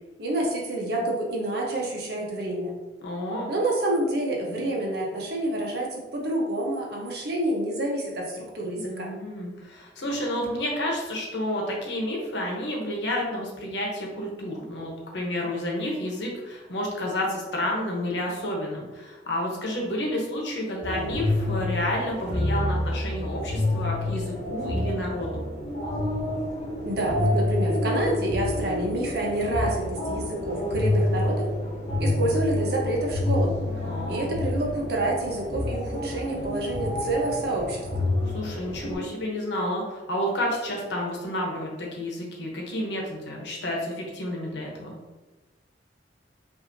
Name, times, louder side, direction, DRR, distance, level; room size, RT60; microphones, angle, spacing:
voice 1, 0.2-2.7 3.5-9.1 26.8-31.5 32.0-33.5 34.1-37.8, right 1 dB, 60° right, -2 dB, 1.0 m, -28 dB
voice 2, 3.0-3.5 8.7-25.4 33.8-34.3 38.3-44.9, left 1 dB, 70° left, -1 dB, 1.0 m, -30 dB
sound 1, 20.8-38.9, left 1 dB, 40° left, 1.1 m, -28 dB
5.4 x 2.7 x 2.7 m, 1.2 s
head